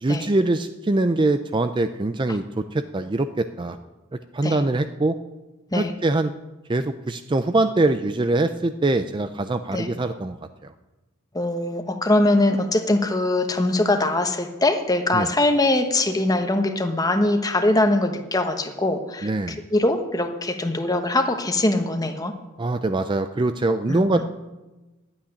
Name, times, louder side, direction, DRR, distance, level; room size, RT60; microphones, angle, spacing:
voice 1, 0.0-3.8 4.3-5.2 5.7-6.3 6.7-10.4 10.6-10.7 15.1-15.3 19.2-19.6 22.6-24.2, right 2 dB, 20° right, 9 dB, 0.4 m, -23 dB
voice 2, 11.3-19.3 19.7-22.3 23.9-24.2, left 2 dB, 15° left, 6 dB, 1.1 m, -22 dB
12.0 x 8.8 x 9.9 m, 1.1 s
head